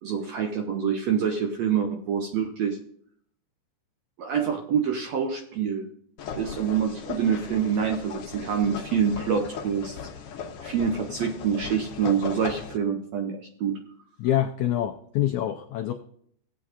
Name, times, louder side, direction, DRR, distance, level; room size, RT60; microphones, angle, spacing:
voice 1, 0.0-2.8 4.2-5.9 6.3-10.0 10.6-13.8, right 7 dB, 75° right, 4 dB, 1.6 m, -26 dB
sound 1, 6.2-12.8, left 7 dB, 65° left, 1.5 m, -38 dB
voice 2, 14.2-15.9, left 12 dB, 85° left, 5 dB, 1.6 m, -26 dB
16.5 x 8.5 x 2.5 m, 0.66 s
omnidirectional pair, 4.0 m